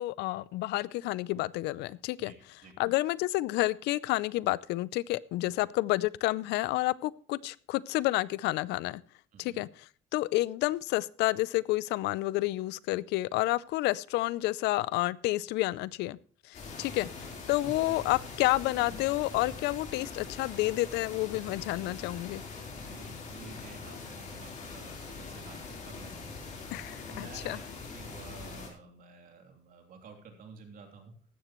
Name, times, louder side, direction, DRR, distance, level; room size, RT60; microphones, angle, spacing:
voice 1, 0.0-9.0 9.4-16.2 16.4-22.4 26.7-27.6, left 18 dB, 85° left, 21 dB, 0.5 m, -30 dB
sound 1, 16.5-28.7, left 4 dB, 45° left, 3.9 m, -43 dB
voice 2, 22.7-25.6 25.8-26.4 27.1-27.6 27.9-31.1, right 4 dB, 55° right, 4 dB, 3.0 m, -50 dB
15.0 x 12.0 x 3.1 m, 0.43 s
cardioid pair, 110°, 17 cm